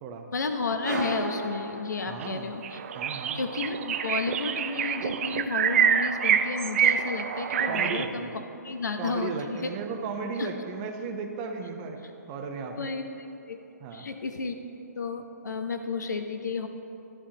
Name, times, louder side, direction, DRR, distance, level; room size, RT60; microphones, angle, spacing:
voice 1, 0.3-2.8 3.3-8.3 8.6-9.7 10.4-10.5 12.8-13.6 13.9-14.6 15.0-16.7, left 4 dB, 80° left, 7 dB, 0.8 m, -32 dB
sound 1, 0.8-2.6, right 2 dB, 85° right, 2.1 m, -34 dB
voice 2, 2.1-2.5 2.9-3.4 7.7-8.3 9.0-12.9 13.8-14.1, right 5 dB, 25° right, 4 dB, 0.8 m, -35 dB
sound 2, 2.2-2.3 2.6-8.0, right 8 dB, 45° right, 0.4 m, -26 dB
11.0 x 11.0 x 2.9 m, 2.9 s
hypercardioid pair, 140°, 10 cm